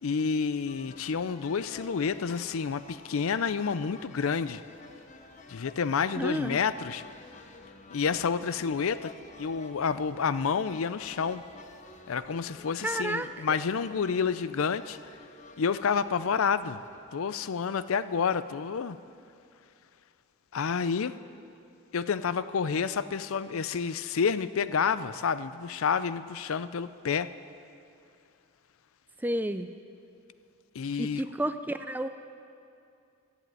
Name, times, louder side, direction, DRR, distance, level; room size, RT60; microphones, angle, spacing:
voice 1, 0.0-4.6 5.5-7.0 7.9-11.4 12.1-15.2 15.6-16.8 17.1-19.0 20.5-21.1 21.9-27.3 30.7-31.2, left 6 dB, 80° left, 14 dB, 0.5 m, -29 dB
sound 1, 0.7-17.2, left 2 dB, 35° left, 0.8 m, -51 dB
voice 2, 6.2-6.6 12.8-13.3 29.2-29.7 31.0-32.1, right 1 dB, 10° right, 10 dB, 0.4 m, -31 dB
13.0 x 11.0 x 8.9 m, 2.5 s
head